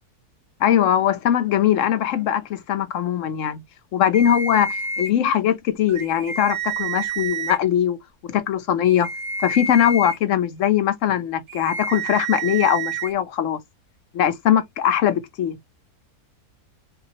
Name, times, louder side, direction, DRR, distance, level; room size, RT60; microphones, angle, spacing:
voice 1, 0.6-3.6 3.9-8.0 8.3-9.1 9.4-13.6 14.1-15.6, left 10 dB, 60° left, 0.9 m, -21 dB
sound 1, 4.1-5.1 5.9-7.6 8.9-10.2 11.5-13.1, right 4 dB, 50° right, 1.5 m, -29 dB
5.7 x 2.4 x 2.8 m
omnidirectional pair, 1.7 m